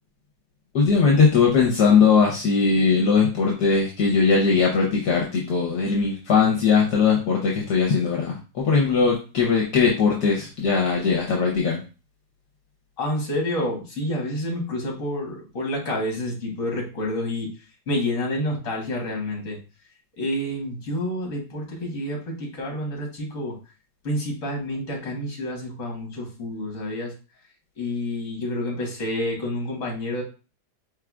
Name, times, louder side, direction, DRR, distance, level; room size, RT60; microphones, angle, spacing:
voice 1, 0.7-11.8, left 5 dB, 70° left, -1 dB, 1.4 m, -20 dB
voice 2, 13.0-17.5 17.9-19.6 20.2-23.6 24.0-27.1 27.8-30.2, left 1 dB, 50° left, 0 dB, 1.7 m, -28 dB
4.7 x 3.6 x 2.3 m, 0.33 s
omnidirectional pair, 1.8 m